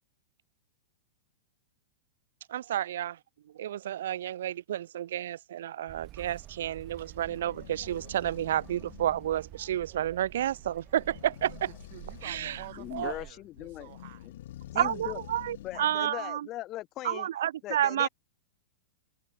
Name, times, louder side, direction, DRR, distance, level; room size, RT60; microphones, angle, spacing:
voice 1, 2.5-3.2 3.5-11.5 12.3-12.5 12.9-13.1 14.8-16.5 17.0-18.1, right 11 dB, 65° right, 0.6 m, -30 dB
sound 1, 5.9-13.3, right 14 dB, 20° right, 5.1 m, -49 dB
sound 2, 6.4-16.1, left 13 dB, 55° left, 1.0 m, -49 dB
voice 2, 11.4-14.3, right 19 dB, 45° right, 7.1 m, -49 dB
voice 3, 12.8-13.9 14.7-15.2 15.6-17.3 17.6-18.1, left 15 dB, 25° left, 2.3 m, -39 dB
supercardioid pair, 175°, 0 cm